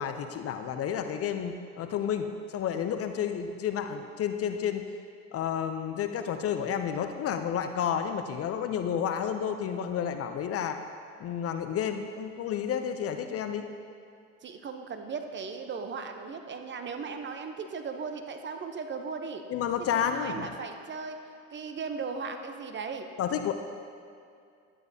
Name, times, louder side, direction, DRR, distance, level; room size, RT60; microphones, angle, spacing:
voice 1, 0.0-4.9 5.3-10.8 11.2-13.7 19.5-20.5 23.2-23.5, left 8 dB, 40° left, 8 dB, 0.5 m, -31 dB
voice 2, 14.4-19.4 19.9-21.2 21.5-23.0, right 5 dB, 30° right, 6 dB, 0.7 m, -37 dB
11.5 x 9.1 x 2.7 m, 2.4 s
hypercardioid pair, 85°, 39 cm